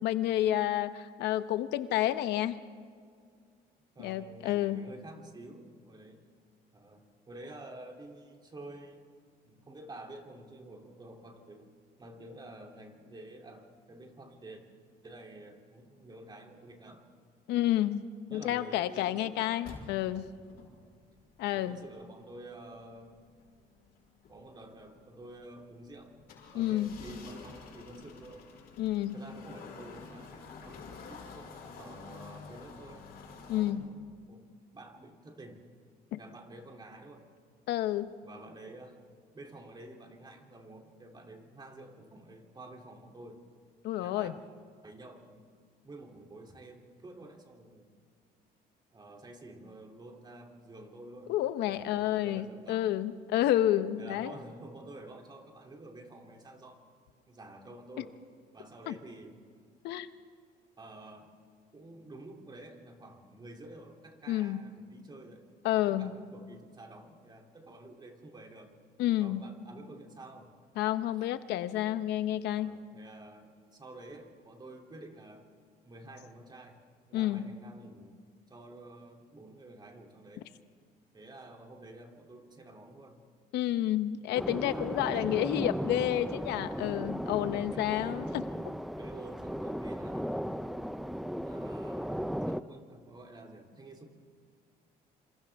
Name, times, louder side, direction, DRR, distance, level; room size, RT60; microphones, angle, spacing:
voice 1, 0.0-2.6 4.0-4.9 17.5-18.0 18.3-20.3 21.4-21.8 26.5-26.9 28.8-29.2 33.5-33.9 37.7-38.1 43.8-44.3 51.3-54.4 58.9-59.0 59.8-60.1 64.3-64.6 65.6-66.1 69.0-69.4 70.8-72.7 77.1-77.5 83.5-88.4, left 13 dB, 85° left, 12 dB, 0.9 m, -30 dB
voice 2, 3.9-6.3 6.7-9.1 9.4-11.7 12.0-14.6 15.0-17.1 18.3-19.6 21.5-23.2 24.3-26.2 26.5-28.5 29.1-33.1 33.5-35.6 36.2-37.3 38.2-39.0 39.3-43.5 44.0-44.4 44.8-45.5 45.8-47.9 48.9-51.3 51.7-52.9 54.0-56.8 57.3-58.2 58.5-59.5 60.8-61.3 61.7-68.8 69.2-70.5 72.5-75.5 75.8-76.8 77.1-78.2 78.5-80.5 81.1-83.2 84.5-85.7 86.7-87.0 87.7-88.2 88.9-90.4 91.3-94.1, right 2 dB, 25° right, 2 dB, 3.0 m, -50 dB
sound 1, 19.6-33.7, left 4 dB, 65° left, 6.0 m, -50 dB
sound 2, 84.3-92.6, equal, ahead, 0.5 m, -36 dB
27.0 x 27.0 x 3.6 m, 2.1 s
cardioid pair, 110°, 17 cm